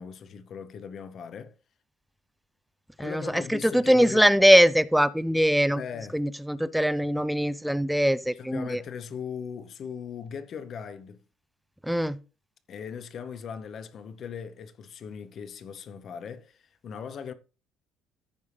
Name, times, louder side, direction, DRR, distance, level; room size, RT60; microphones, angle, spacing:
voice 1, 0.0-1.6 3.0-4.3 5.8-6.2 8.4-11.2 12.7-17.3, left 7 dB, 35° left, 0.8 m, -39 dB
voice 2, 3.0-5.8 6.1-8.8 11.8-12.2, equal, ahead, 0.3 m, -22 dB
14.5 x 5.5 x 3.3 m
cardioid pair, 180°, 0 cm